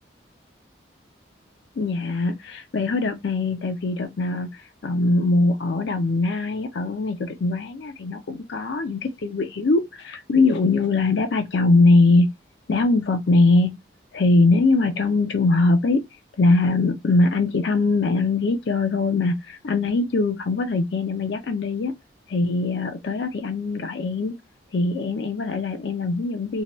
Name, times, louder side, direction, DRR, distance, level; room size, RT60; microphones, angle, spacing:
voice 1, 1.8-12.3 12.7-13.7 14.1-16.0 16.4-21.9 22.3-24.3 24.7-26.6, left 3 dB, 70° left, 0.5 m, -21 dB
2.8 x 2.2 x 2.9 m
head